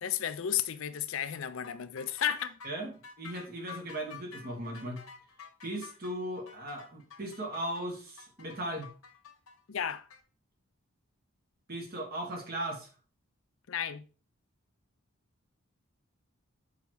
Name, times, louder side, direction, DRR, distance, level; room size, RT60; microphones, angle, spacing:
voice 1, 0.0-2.5 9.7-10.0 13.7-14.0, left 9 dB, 70° left, 0.5 m, -33 dB
sound 1, 1.6-10.2, left 6 dB, 85° left, 1.2 m, -50 dB
voice 2, 2.6-5.0 5.6-8.9 11.7-12.9, right 1 dB, 45° right, 1.5 m, -37 dB
7.0 x 4.6 x 3.0 m
head